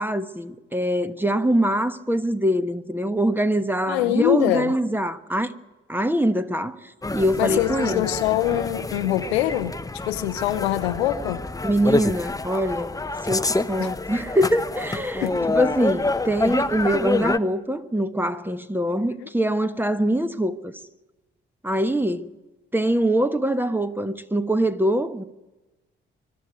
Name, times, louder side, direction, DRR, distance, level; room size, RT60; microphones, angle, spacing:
voice 1, 0.0-5.5 5.9-8.1 11.6-12.9 13.2-20.7 21.6-22.3 22.7-25.2, right 1 dB, 5° right, 1.2 m, -23 dB
voice 2, 3.9-4.7 7.4-9.8 10.1-11.4 13.8-13.9 15.2-15.5 19.2-19.3, left 13 dB, 75° left, 0.8 m, -24 dB
sound 1, 7.0-17.4, left 2 dB, 10° left, 0.8 m, -27 dB
23.5 x 12.0 x 9.2 m
figure-of-eight pair, 40°, 32 cm